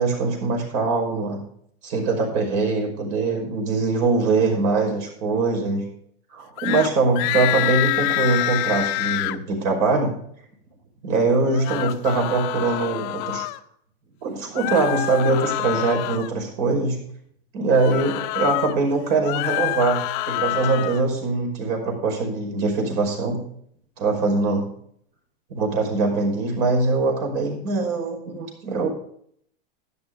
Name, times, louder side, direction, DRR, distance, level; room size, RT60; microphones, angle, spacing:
voice 1, 0.0-1.4 1.8-5.9 6.3-10.1 11.0-13.5 14.2-17.0 17.5-23.4 24.0-24.7 25.5-28.9, right 3 dB, 55° right, 2 dB, 5.3 m, -22 dB
sound 1, 6.6-6.9 7.1-9.4 11.4-13.6 14.5-16.3 17.7-18.7 19.1-21.0, left 17 dB, 50° left, 0.8 m, -26 dB
12.5 x 11.0 x 3.8 m, 0.65 s
supercardioid pair, 130°, 31 cm